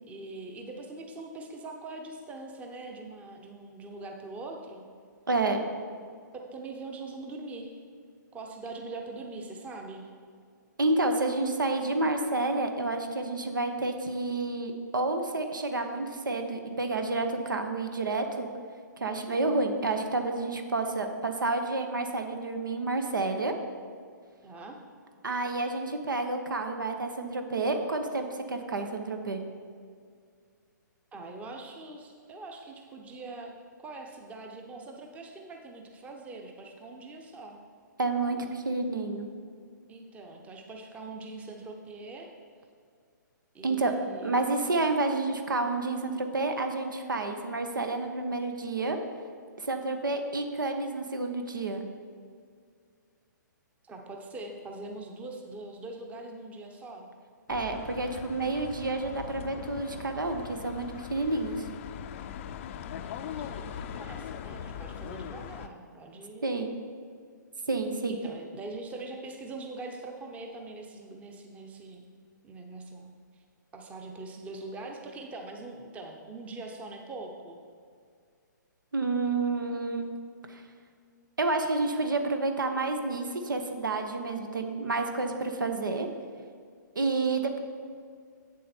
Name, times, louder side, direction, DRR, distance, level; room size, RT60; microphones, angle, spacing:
voice 1, 0.0-4.9 6.3-7.7 8.3-10.1 24.4-24.8 31.1-33.5 33.8-37.6 39.9-42.3 43.5-44.5 53.8-57.1 63.0-66.5 68.1-72.0 72.4-73.4 73.7-77.6, right 2 dB, 15° right, 2 dB, 0.8 m, -42 dB
voice 2, 5.3-5.6 10.8-18.5 19.0-23.5 25.2-29.4 38.0-39.3 43.6-43.9 44.2-49.0 49.6-51.8 57.5-61.6 66.4-66.7 67.7-68.2 78.9-80.1 80.5-80.6 81.4-86.1 86.9-87.6, right 2 dB, 90° right, 6 dB, 1.0 m, -29 dB
sound 1, 57.5-65.7, left 8 dB, 40° left, 0.4 m, -40 dB
8.2 x 7.3 x 4.4 m, 2.1 s
hypercardioid pair, 140°, 10 cm